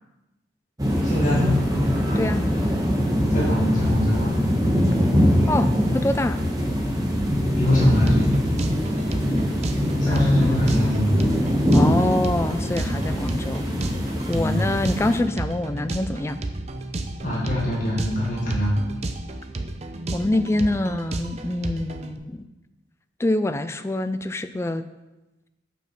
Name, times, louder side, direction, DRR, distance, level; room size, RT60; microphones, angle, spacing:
sound 1, 0.8-15.2, equal, 20° right, 1.2 m, -22 dB
voice 1, 1.0-1.6 3.3-4.3 7.6-8.3 10.0-11.2 12.8-13.1 14.3-14.6 17.2-18.8, left 1 dB, 45° left, -6 dB, 1.8 m, -24 dB
voice 2, 5.5-6.4 10.0-10.6 11.7-13.7 14.3-16.4 20.1-22.4 23.2-24.8, left 1 dB, 15° left, 10 dB, 0.3 m, -25 dB
sound 2, 7.8-22.1, right 2 dB, 35° right, 0.5 m, -33 dB
7.0 x 5.8 x 5.8 m, 1.0 s
head